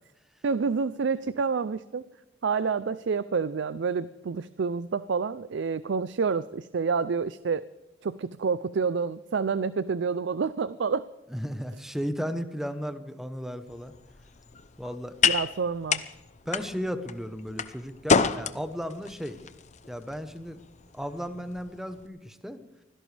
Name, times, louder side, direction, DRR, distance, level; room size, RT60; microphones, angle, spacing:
voice 1, 0.4-2.1 2.4-7.7 8.0-11.1 15.2-16.0, right 5 dB, 65° right, 16 dB, 0.5 m, -28 dB
voice 2, 11.3-13.9 14.8-15.2 16.5-19.4 19.9-20.6 20.9-22.6, equal, ahead, 10 dB, 1.0 m, -35 dB
sound 1, 13.7-22.1, left 5 dB, 40° left, 0.7 m, -31 dB
24.5 x 16.5 x 3.4 m, 1.1 s
head